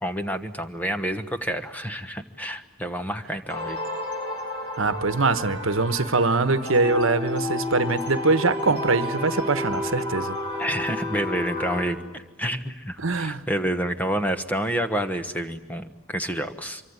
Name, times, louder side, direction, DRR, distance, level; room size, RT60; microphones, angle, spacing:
voice 1, 0.0-3.8 10.6-16.8, right 1 dB, 5° left, 8 dB, 1.2 m, -29 dB
sound 1, 3.5-11.8, left 1 dB, 25° left, 6.9 m, -31 dB
voice 2, 4.8-10.6 13.0-13.5, right 3 dB, 70° right, 12 dB, 1.2 m, -23 dB
25.0 x 24.0 x 9.6 m, 1.2 s
head